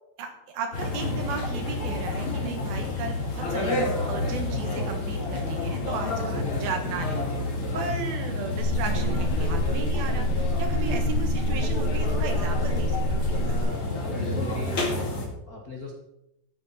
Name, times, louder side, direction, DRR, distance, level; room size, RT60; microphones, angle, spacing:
voice 1, 0.2-3.8 4.1-7.2 7.7-13.5, right 5 dB, 70° right, 5 dB, 3.2 m, -35 dB
sound 1, 0.7-15.3, left 2 dB, 35° left, 2.8 m, -29 dB
voice 2, 6.0-6.6 7.6-8.0 10.7-11.0 13.4-15.9, left 2 dB, 50° left, -1 dB, 1.0 m, -40 dB
sound 2, 8.6-13.6, left 1 dB, 90° left, 3.0 m, -26 dB
14.0 x 10.0 x 4.3 m, 0.85 s
omnidirectional pair, 4.6 m